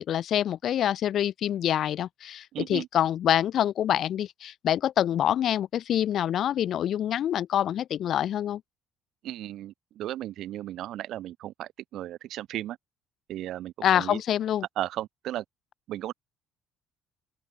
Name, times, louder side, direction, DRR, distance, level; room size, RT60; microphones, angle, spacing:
voice 1, 0.0-8.6 13.8-14.6, left 10 dB, 50° left, 1.0 m, -26 dB
voice 2, 2.5-2.9 9.2-12.8 13.3-14.2 14.8-15.4 15.9-16.1, right 13 dB, 60° right, 5.0 m, -35 dB
open air
cardioid pair, 155°, 0 cm